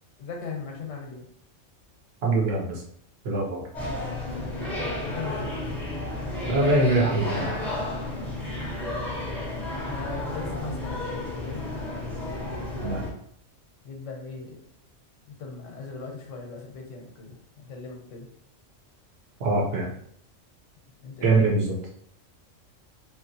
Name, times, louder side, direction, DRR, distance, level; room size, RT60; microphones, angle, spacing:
voice 1, 0.2-1.3 4.3-5.6 9.9-11.6 13.8-14.6 15.3-18.3 21.0-21.5, left 4 dB, 85° left, 1 dB, 1.0 m, -39 dB
voice 2, 2.2-2.8 3.2-3.7 6.4-7.5 12.8-13.1 19.4-19.9 21.2-21.7, right 2 dB, 60° right, -1 dB, 0.9 m, -23 dB
sound 1, 3.7-13.1, left 1 dB, ahead, 0.5 m, -31 dB
2.9 x 2.4 x 2.6 m, 0.66 s
omnidirectional pair, 1.3 m